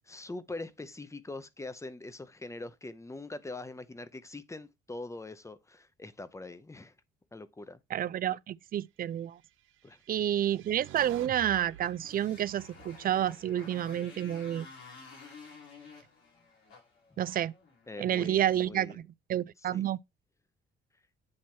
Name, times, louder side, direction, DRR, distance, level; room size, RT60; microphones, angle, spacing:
voice 1, 0.0-6.9 7.3-7.8 9.8-10.0 17.1-17.2 17.9-19.0 19.7-19.8, left 2 dB, 15° left, 0.7 m, -43 dB
voice 2, 7.9-9.4 10.1-14.7 17.2-17.5 18.0-19.0 19.3-20.0, right 11 dB, 45° right, 0.4 m, -29 dB
sound 1, 9.9-14.2, right 11 dB, 90° right, 0.7 m, -50 dB
Motorcycle, 11.8-18.3, left 4 dB, 80° left, 4.3 m, -52 dB
8.6 x 3.0 x 4.3 m
cardioid pair, 90°, 20 cm